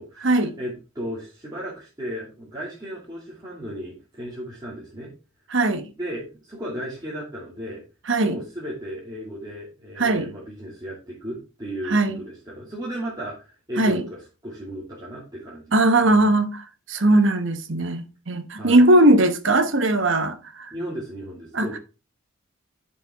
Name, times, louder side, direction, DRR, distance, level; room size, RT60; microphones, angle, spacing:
voice 1, 0.0-5.1 6.0-7.8 8.2-16.2 18.6-19.0 20.7-21.8, equal, 20° right, 2.3 m, -35 dB
voice 2, 5.5-5.9 8.1-8.4 10.0-10.3 11.8-12.2 13.8-14.0 15.7-20.7 21.5-21.7, right 1 dB, 60° right, 1.1 m, -19 dB
10.5 x 5.5 x 3.5 m
head